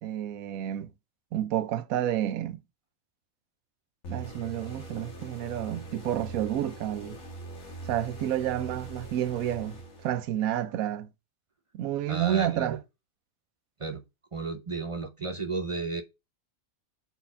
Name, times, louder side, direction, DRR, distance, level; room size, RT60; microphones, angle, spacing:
voice 1, 0.0-0.9 1.3-2.6 4.1-7.2 7.9-9.8 10.0-11.1 11.7-12.8, right 11 dB, 90° right, 1.1 m, -30 dB
sound 1, 4.0-10.5, right 2 dB, 85° left, 1.8 m, -42 dB
voice 2, 12.1-12.8 13.8-14.0 14.3-16.0, right 4 dB, 30° right, 0.6 m, -33 dB
4.5 x 4.2 x 5.5 m
omnidirectional pair, 1.4 m